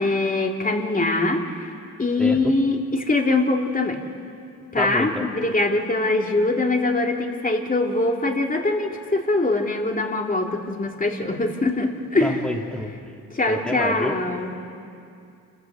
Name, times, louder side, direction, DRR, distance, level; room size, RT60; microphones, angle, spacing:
voice 1, 0.0-1.4 2.0-4.0 4.7-12.4 13.3-14.5, left 2 dB, 25° left, 2 dB, 2.7 m, -22 dB
voice 2, 2.2-2.5 4.8-5.3 12.2-13.1 13.5-14.2, equal, 5° left, 1 dB, 2.7 m, -29 dB
28.5 x 15.0 x 7.5 m, 2.4 s
cardioid pair, 70°, 32 cm